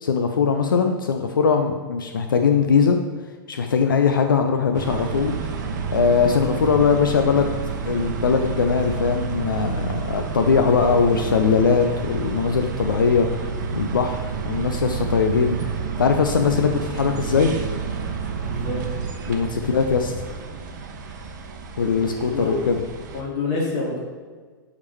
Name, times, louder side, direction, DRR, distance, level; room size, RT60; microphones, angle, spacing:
voice 1, 0.0-3.0 3.5-5.4 5.9-7.6 7.9-13.3 13.7-15.6 16.0-17.5 19.3-20.1 21.8-22.8, left 5 dB, 70° left, 6 dB, 0.5 m, -20 dB
sound 1, 4.7-23.2, right 5 dB, 55° right, 0.8 m, -29 dB
voice 2, 18.4-18.8 22.3-22.6 23.1-24.0, left 3 dB, 40° left, -3 dB, 2.1 m, -27 dB
8.2 x 5.1 x 3.2 m, 1.5 s
figure-of-eight pair, 100°, 11 cm